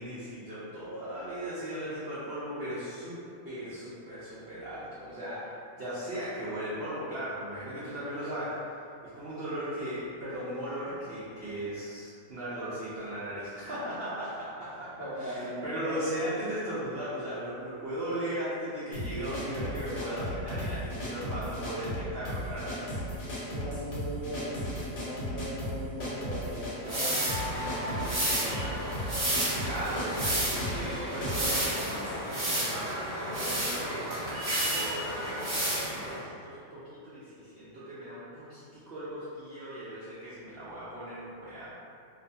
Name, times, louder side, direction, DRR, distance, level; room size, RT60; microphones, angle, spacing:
voice 1, 0.0-22.9 29.3-34.2 34.5-41.7, equal, 80° right, -10 dB, 0.5 m, -37 dB
voice 2, 15.0-16.2 23.5-28.1 28.4-29.0, equal, 85° left, -11 dB, 0.4 m, -39 dB
sound 1, 18.9-32.2, equal, 60° left, 1.0 m, -36 dB
sound 2, 26.8-36.2, right 1 dB, 40° right, 0.7 m, -31 dB
2.6 x 2.2 x 2.6 m, 2.5 s
omnidirectional pair, 1.7 m